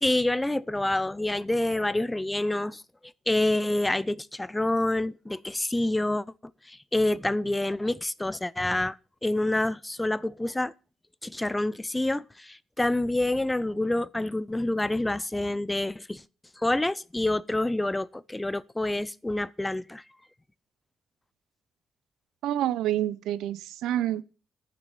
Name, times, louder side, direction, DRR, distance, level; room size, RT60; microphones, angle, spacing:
voice 1, 0.0-2.8 3.3-6.2 6.7-9.0 9.2-10.7 11.2-16.2 16.6-20.0, left 1 dB, 10° left, 0.5 m, -27 dB
voice 2, 22.4-24.2, right 12 dB, 85° right, 0.6 m, -28 dB
9.2 x 6.9 x 8.0 m
cardioid pair, 90°, 0 cm